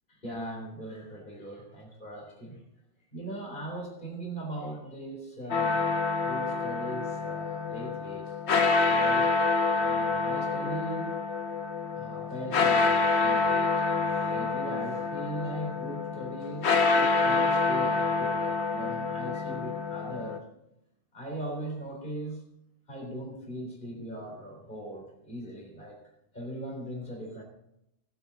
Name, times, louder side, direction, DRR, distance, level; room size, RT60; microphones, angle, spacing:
voice 1, 0.1-2.6 3.1-8.3 8.8-9.3 9.7-11.1 11.9-20.4 21.1-22.4 22.9-26.0 26.3-27.4, right 1 dB, 40° left, -1 dB, 3.9 m, -39 dB
sound 1, 5.5-20.4, left 4 dB, 60° left, 1.2 m, -27 dB
19.0 x 8.1 x 4.0 m, 0.81 s
omnidirectional pair, 1.3 m